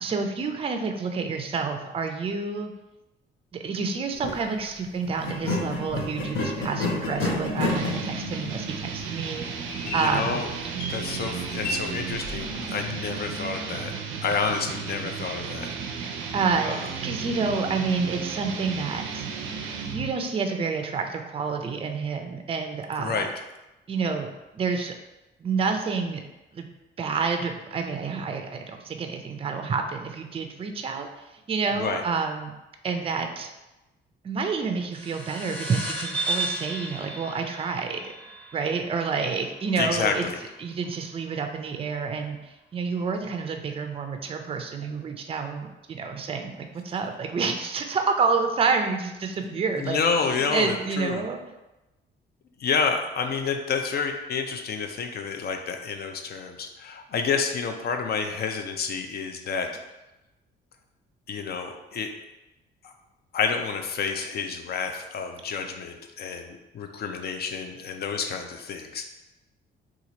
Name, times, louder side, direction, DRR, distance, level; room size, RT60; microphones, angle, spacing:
voice 1, 0.0-2.7 3.5-10.4 16.3-16.8 17.0-19.3 19.9-23.3 23.9-24.9 25.4-26.2 26.5-26.7 27.0-31.1 31.5-32.5 32.8-33.5 34.2-38.1 38.5-40.3 40.6-51.4, right 5 dB, 30° right, 5 dB, 0.4 m, -29 dB
sound 1, 4.1-4.4 5.2-12.7, left 2 dB, 75° left, 0.8 m, -31 dB
sound 2, 7.7-20.2, right 6 dB, 90° right, 0.4 m, -34 dB
voice 2, 10.0-10.5 10.9-13.9 14.2-15.7 16.7-16.8 23.0-23.3 31.8-32.0 39.8-40.4 49.8-51.2 52.6-59.7 61.3-62.1 62.8-62.9 63.3-69.0, left 5 dB, 55° left, 5 dB, 0.5 m, -29 dB
sound 3, 34.9-39.8, right 2 dB, 5° left, 0.7 m, -34 dB
2.9 x 2.4 x 3.9 m, 1.0 s
cardioid pair, 90°, 20 cm